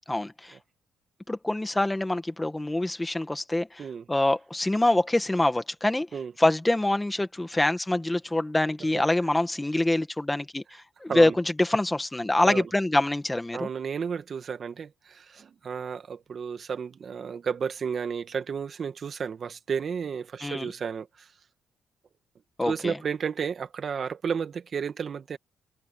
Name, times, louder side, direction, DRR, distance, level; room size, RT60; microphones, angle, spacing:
voice 1, 0.1-0.5 1.3-3.8 4.1-6.1 6.4-13.7 20.4-20.7 22.6-23.0, left 1 dB, 10° left, 2.0 m, -25 dB
voice 2, 13.5-21.3 22.6-25.4, right 6 dB, 50° right, 2.0 m, -32 dB
cardioid pair, 90°, 0 cm